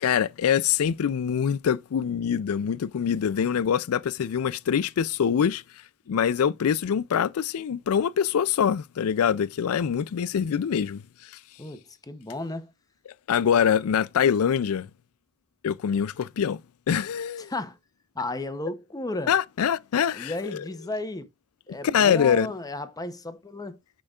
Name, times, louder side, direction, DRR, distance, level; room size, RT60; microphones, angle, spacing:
voice 1, 0.0-5.6 6.1-11.0 13.3-14.9 15.6-16.6 16.9-17.5 19.3-20.6 21.8-22.5, left 8 dB, 70° left, 0.4 m, -24 dB
voice 2, 11.6-12.7 17.4-17.8 18.1-19.3 20.1-21.3 21.7-23.8, left 2 dB, 15° left, 0.7 m, -34 dB
8.6 x 5.1 x 2.4 m
head